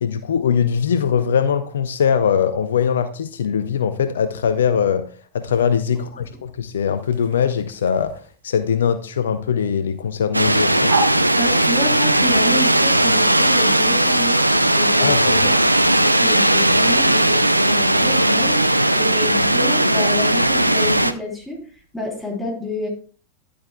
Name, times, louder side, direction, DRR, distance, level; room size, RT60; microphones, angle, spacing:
voice 1, 0.0-5.1 5.3-10.9 15.0-15.6, left 7 dB, 65° left, 11 dB, 0.5 m, -21 dB
sound 1, 5.4-22.2, right 3 dB, 60° right, 1.3 m, -37 dB
sound 2, 10.3-21.1, right 1 dB, 85° right, 0.5 m, -17 dB
voice 2, 11.4-15.6 16.0-21.6 21.9-22.9, left 1 dB, 5° left, -2 dB, 3.4 m, -29 dB
11.0 x 8.6 x 2.2 m, 0.41 s
figure-of-eight pair, 90°, 0 cm